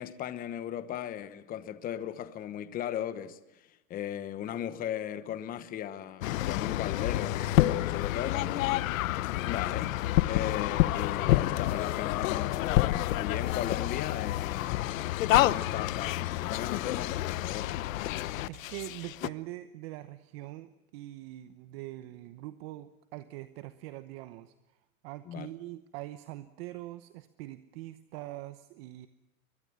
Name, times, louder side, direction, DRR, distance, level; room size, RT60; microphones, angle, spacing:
voice 1, 0.0-10.0 10.3-14.9 15.4-17.8 25.3-25.5, left 10 dB, 20° left, 1.1 m, -37 dB
sound 1, 6.2-19.3, left 15 dB, 75° left, 0.9 m, -28 dB
voice 2, 18.5-24.5 25.0-29.1, right 16 dB, 45° right, 1.0 m, -43 dB
23.0 x 21.0 x 8.8 m
supercardioid pair, 160°, 40 cm